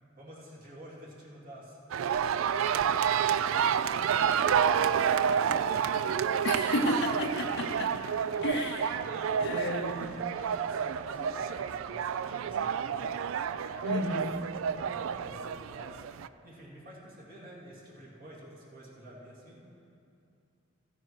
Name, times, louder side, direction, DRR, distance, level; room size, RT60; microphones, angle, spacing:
voice 1, 0.2-1.8 2.2-3.2 3.5-6.5 6.7-7.3 8.3-8.6 9.0-9.5 9.9-16.0 16.4-19.6, right 1 dB, 45° right, -5 dB, 2.6 m, -49 dB
sound 1, 1.9-16.3, right 8 dB, 80° right, 0.3 m, -29 dB
voice 2, 6.4-7.9 8.4-9.0 9.4-10.2 13.8-14.3, left 2 dB, 65° left, 0 dB, 0.6 m, -32 dB
15.0 x 9.2 x 4.6 m, 2.6 s
head